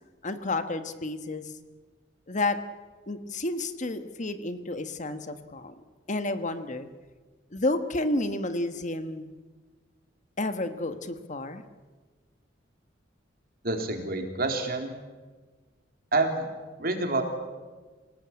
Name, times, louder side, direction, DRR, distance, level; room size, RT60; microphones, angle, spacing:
voice 1, 0.2-1.5 2.3-2.6 3.1-5.7 6.1-6.9 7.5-9.3 10.4-11.6, left 2 dB, 40° left, 9 dB, 1.5 m, -30 dB
voice 2, 13.6-14.9 16.1-16.5 16.8-17.2, right 2 dB, 50° right, 4 dB, 3.6 m, -27 dB
27.0 x 18.0 x 8.9 m, 1.4 s
head